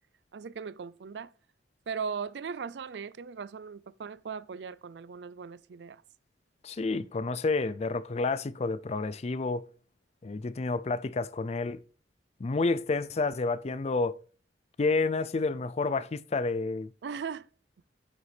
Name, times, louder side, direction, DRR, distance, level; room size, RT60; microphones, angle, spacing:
voice 1, 0.3-1.3 1.9-6.0 17.0-17.5, right 6 dB, 70° right, 0.4 m, -38 dB
voice 2, 6.6-9.7 10.2-11.8 12.4-14.2 14.8-16.9, left 3 dB, 40° left, 0.4 m, -29 dB
9.0 x 6.7 x 3.3 m
head